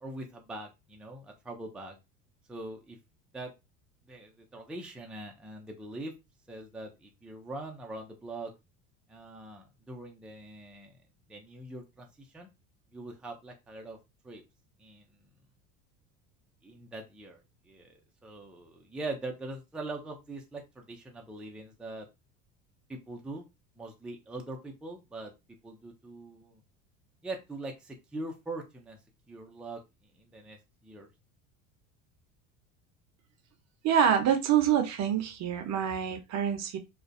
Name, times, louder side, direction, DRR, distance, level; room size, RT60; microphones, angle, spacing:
voice 1, 0.0-2.0 2.5-3.0 3.3-3.5 4.1-6.1 6.5-8.5 9.1-10.9 11.3-12.5 12.9-14.0 14.2-14.4 14.8-15.3 16.6-17.4 17.7-22.1 22.9-23.4 23.8-25.3 25.6-26.6 27.2-29.0 29.3-29.8 30.2-30.6 30.8-31.1, right 2 dB, 5° right, 0.5 m, -42 dB
voice 2, 33.8-36.8, right 8 dB, 45° right, 0.6 m, -26 dB
2.4 x 2.1 x 2.4 m
hypercardioid pair, 85°, 38 cm